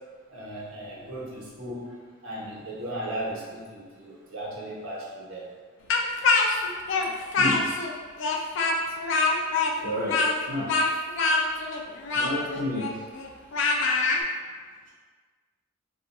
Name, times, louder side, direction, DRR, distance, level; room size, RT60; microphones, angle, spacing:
voice 1, 0.3-1.9 2.2-5.5, right 1 dB, 90° right, -5 dB, 0.9 m, -36 dB
Speech, 5.9-7.9 8.2-14.2, left 3 dB, 65° left, 0.4 m, -24 dB
voice 2, 9.8-10.2 10.5-10.7 12.1-13.0, left 1 dB, 65° right, -6 dB, 0.7 m, -30 dB
3.7 x 2.4 x 2.8 m, 1.5 s
head